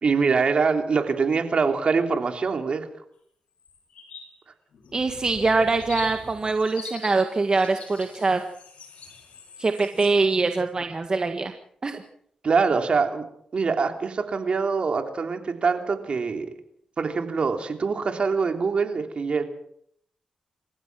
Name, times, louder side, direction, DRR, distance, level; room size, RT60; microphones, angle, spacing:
voice 1, 0.0-2.9 12.4-13.2 13.5-16.5 17.0-19.4, right 5 dB, 55° right, 5 dB, 3.3 m, -24 dB
sound 1, 3.6-4.3 4.7-10.1, left 5 dB, 80° left, 6.1 m, -43 dB
voice 2, 4.9-8.4 9.6-11.5 11.8-12.0, right 3 dB, 40° right, 6 dB, 1.7 m, -23 dB
28.5 x 15.5 x 6.2 m, 0.68 s
cardioid pair, 70°, 2 cm